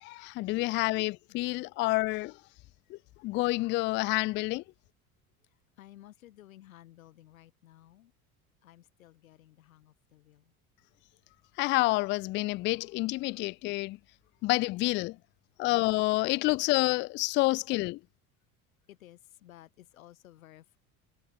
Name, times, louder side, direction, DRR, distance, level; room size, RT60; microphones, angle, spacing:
voice 1, 0.0-2.3 2.9-4.6 11.6-14.0 14.4-15.2 15.6-18.0, left 21 dB, 30° left, 0.4 m, -28 dB
voice 2, 0.5-0.9 1.3-1.4 5.4-8.1 8.6-10.5 18.9-20.8, left 14 dB, 70° left, 7.6 m, -55 dB
figure-of-eight pair, 70°, 43 cm